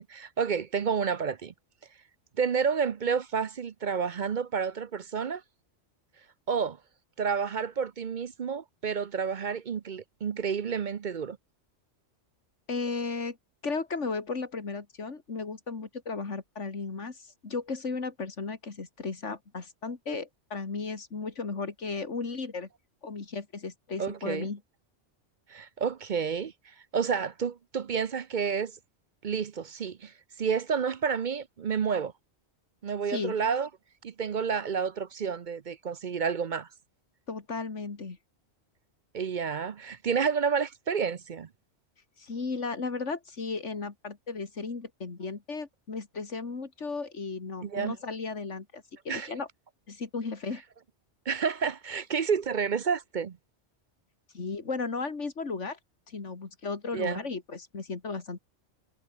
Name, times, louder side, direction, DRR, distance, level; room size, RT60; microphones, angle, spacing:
voice 1, 0.0-1.5 2.4-5.4 6.5-6.8 7.2-11.4 24.0-24.5 25.5-26.5 26.9-28.7 29.2-30.1 30.4-32.1 32.8-33.7 34.0-36.7 39.1-41.5 47.6-48.0 49.1-49.3 51.3-53.4 56.9-57.2, right 6 dB, 50° right, 0.7 m, -30 dB
voice 2, 12.7-13.4 13.6-22.7 23.0-24.6 33.1-33.3 37.3-38.2 42.2-49.5 49.9-50.6 54.3-55.8 56.1-58.4, left 4 dB, 85° left, 2.7 m, -35 dB
omnidirectional pair, 1.2 m